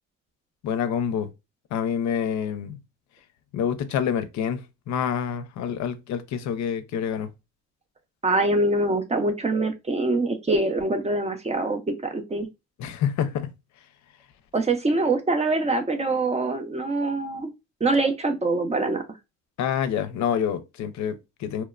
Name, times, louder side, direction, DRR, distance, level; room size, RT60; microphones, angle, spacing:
voice 1, 0.6-1.3 1.7-2.8 3.5-7.3 12.8-13.5 19.6-21.6, left 8 dB, 70° left, 0.5 m, -27 dB
voice 2, 8.2-12.5 14.5-17.5 17.8-19.0, right 2 dB, 20° right, 0.5 m, -24 dB
2.9 x 2.0 x 2.2 m
cardioid pair, 90°, 30 cm